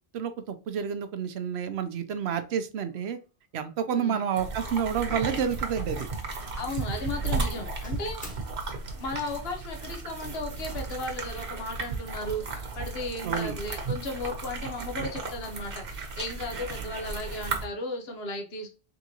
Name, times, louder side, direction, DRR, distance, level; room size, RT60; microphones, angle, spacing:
voice 1, 0.1-3.2 3.5-6.1 13.2-13.5, right 7 dB, 90° right, 9 dB, 0.9 m, -29 dB
Doorbell, 2.9-3.2 3.5-3.9 4.9-6.0 6.2-6.7 7.1-8.4, equal, 10° left, 1.1 m, -51 dB
sound 1, 4.4-17.6, right 4 dB, 60° right, 1.1 m, -34 dB
voice 2, 6.5-8.2 8.9-18.8, left 2 dB, 75° left, 3 dB, 1.2 m, -35 dB
3.9 x 3.5 x 2.9 m, 0.32 s
omnidirectional pair, 1.1 m